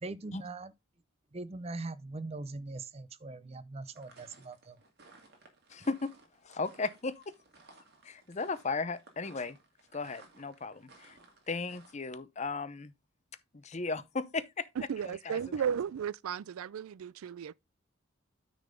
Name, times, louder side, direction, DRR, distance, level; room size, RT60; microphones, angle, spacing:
voice 1, 0.0-0.7 1.3-4.8, right 3 dB, 30° right, 0.5 m, -41 dB
sound 1, 3.9-11.9, right 3 dB, 50° right, 2.3 m, -59 dB
voice 2, 5.7-6.1 6.4-7.3 8.0-9.6 9.9-11.2 11.5-12.9 13.6-14.6 15.0-15.4, left 3 dB, 35° left, 0.6 m, -36 dB
voice 3, 14.8-17.5, right 8 dB, 80° right, 0.4 m, -34 dB
9.7 x 3.9 x 5.0 m
head